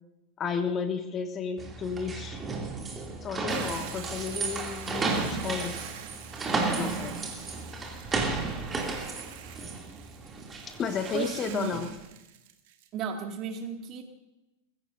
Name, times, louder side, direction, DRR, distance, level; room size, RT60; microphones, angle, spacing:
voice 1, 0.4-2.4 3.2-5.7 6.8-7.2 10.8-11.9, left 6 dB, 25° left, 9 dB, 1.2 m, -32 dB
sound 1, 1.6-12.0, right 3 dB, 15° right, 2.8 m, -33 dB
Hiss / Boiling, 3.5-12.9, right 11 dB, 50° right, 1.5 m, -47 dB
voice 2, 11.1-11.8 12.9-14.0, right 6 dB, 35° right, 4 dB, 2.2 m, -34 dB
21.0 x 16.0 x 2.7 m, 0.97 s
figure-of-eight pair, 90°, 0 cm